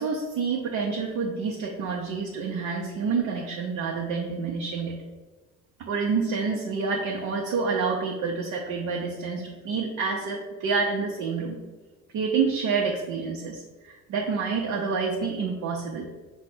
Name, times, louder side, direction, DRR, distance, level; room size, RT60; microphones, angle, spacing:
voice 1, 0.0-4.9 5.8-11.6 12.1-16.1, right 5 dB, 75° right, -1 dB, 0.6 m, -28 dB
5.3 x 2.1 x 4.3 m, 1.2 s
cardioid pair, 90°, 30 cm